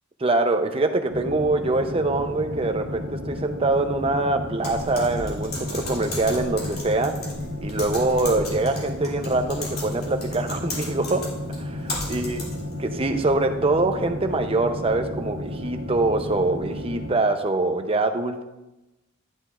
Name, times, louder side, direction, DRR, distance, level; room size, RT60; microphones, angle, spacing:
voice 1, 0.2-7.2 7.6-11.3 11.6-12.4 12.8-18.4, right 2 dB, 25° right, 6 dB, 0.6 m, -24 dB
sound 1, 1.1-17.1, left 1 dB, 65° right, 1.5 m, -33 dB
Typing, 4.6-12.8, left 2 dB, 50° left, 2.6 m, -35 dB
11.5 x 8.0 x 2.4 m, 0.98 s
head